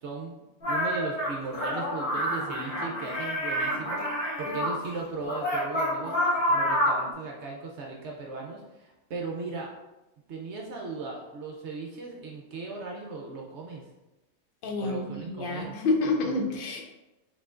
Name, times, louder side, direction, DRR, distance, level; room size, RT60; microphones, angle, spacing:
voice 1, 0.0-6.2 6.5-9.7 10.3-13.8 14.8-15.8, right 3 dB, 65° right, 0 dB, 0.8 m, -37 dB
sound 1, 0.6-4.8 5.2-7.1, equal, 40° left, 1.5 m, -28 dB
voice 2, 14.6-16.8, left 3 dB, 75° left, 2 dB, 0.5 m, -28 dB
4.6 x 3.7 x 2.4 m, 1.0 s
omnidirectional pair, 1.6 m